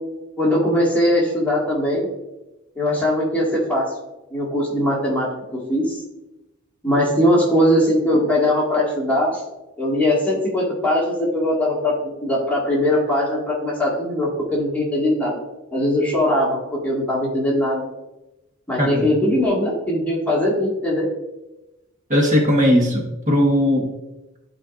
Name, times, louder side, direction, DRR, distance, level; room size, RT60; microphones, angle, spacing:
voice 1, 0.4-2.1 2.8-3.9 4.3-6.0 6.8-9.4 9.8-15.4 15.7-16.6 16.8-17.8 18.7-21.1, left 1 dB, 5° left, -5 dB, 1.9 m, -20 dB
voice 2, 22.1-23.9, equal, 35° right, 0 dB, 1.3 m, -18 dB
13.0 x 4.6 x 2.5 m, 0.98 s
head